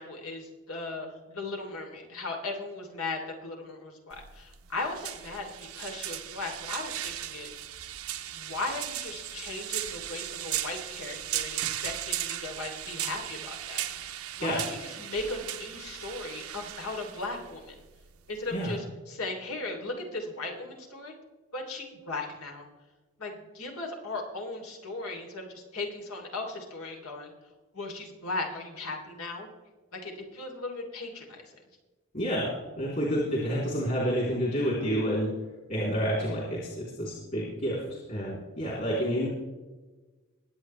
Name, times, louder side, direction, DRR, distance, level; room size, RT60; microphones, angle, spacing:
voice 1, 0.0-7.5 8.3-13.8 14.4-17.7 18.3-21.1 21.5-22.6 23.2-27.3 27.7-29.5 29.9-31.5, left 2 dB, 80° left, 2 dB, 3.0 m, -37 dB
sound 1, 4.1-18.8, right 12 dB, 80° right, 0.9 m, -37 dB
voice 2, 32.1-32.5 32.7-35.3 35.7-37.8 38.1-39.3, equal, 40° left, -4 dB, 3.3 m, -29 dB
22.0 x 8.6 x 3.2 m, 1.2 s
head